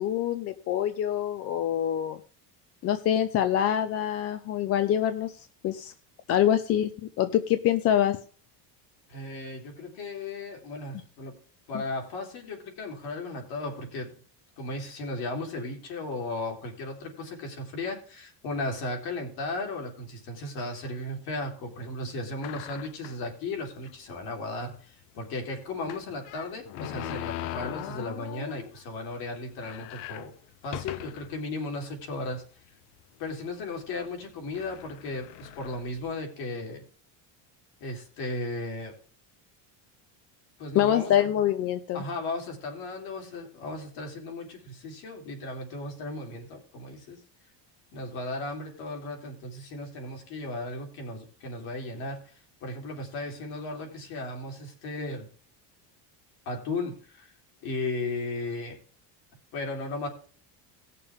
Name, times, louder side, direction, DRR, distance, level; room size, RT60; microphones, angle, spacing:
voice 1, 0.0-2.2 2.8-5.9 6.3-8.2 11.7-11.8 40.7-42.0, left 11 dB, 30° left, 10 dB, 0.5 m, -25 dB
voice 2, 9.1-11.3 11.7-14.2 14.6-30.3 30.6-32.4 33.2-36.8 37.8-39.0 40.6-41.3 41.9-47.2 47.9-55.3 56.4-57.3 57.6-58.8 59.5-60.1, left 2 dB, 50° left, 2 dB, 3.4 m, -35 dB
sound 1, 22.4-23.3 23.8-23.9 24.2-24.3 25.9-28.8 29.1-29.2 29.5-31.4 32.0-32.1 33.0-33.3 34.1-34.2 34.5-36.1, left 12 dB, 80° left, 0.9 m, -39 dB
18.5 x 6.7 x 3.5 m, 0.42 s
cardioid pair, 175°, 47 cm